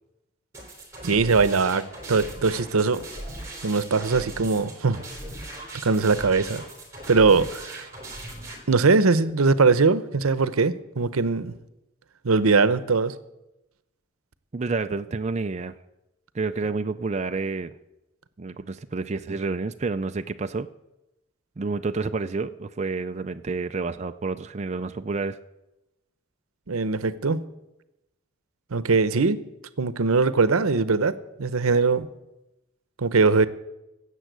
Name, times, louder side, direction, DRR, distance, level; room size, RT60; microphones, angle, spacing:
sound 1, 0.5-8.6, right 1 dB, 15° right, 3.5 m, -39 dB
voice 1, 1.0-3.0 3.6-5.0 5.8-6.6 7.1-7.9 8.7-11.5 12.2-13.1 26.7-27.4 28.7-29.4 29.8-32.1 33.0-33.5, right 4 dB, 90° right, 15 dB, 0.8 m, -21 dB
voice 2, 14.5-15.8 16.3-17.8 18.4-20.7 21.6-25.4, right 3 dB, 30° right, 8 dB, 0.4 m, -29 dB
16.5 x 7.4 x 8.0 m, 0.94 s
head